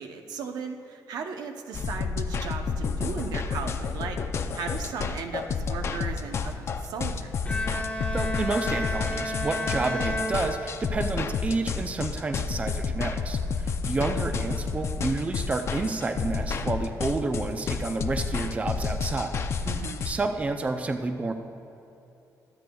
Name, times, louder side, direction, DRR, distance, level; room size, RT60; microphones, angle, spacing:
voice 1, 0.0-7.3 19.6-20.1, right 5 dB, 70° right, 5 dB, 0.7 m, -36 dB
sound 1, 1.7-20.2, left 5 dB, 40° left, 0.5 m, -30 dB
Bowed string instrument, 7.5-11.2, left 1 dB, 20° left, 1.0 m, -32 dB
voice 2, 8.1-19.4 20.0-21.3, right 3 dB, 20° right, 6 dB, 0.4 m, -30 dB
23.0 x 8.0 x 2.3 m, 3.0 s
cardioid pair, 140°, 7 cm